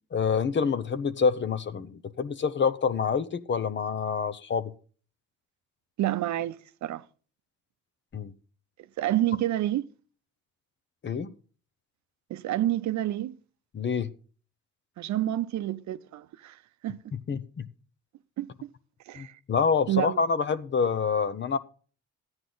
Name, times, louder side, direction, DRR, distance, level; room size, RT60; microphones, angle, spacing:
voice 1, 0.1-4.7 8.1-8.3 11.0-11.3 13.7-14.1 17.1-17.7 19.2-21.6, left 6 dB, 40° left, 0.8 m, -27 dB
voice 2, 6.0-7.0 9.0-9.8 12.3-13.4 15.0-17.0 18.4-18.7 19.1-19.4 19.9-20.2, right 13 dB, 70° right, 0.6 m, -29 dB
13.5 x 9.6 x 3.9 m
cardioid pair, 90°, 30 cm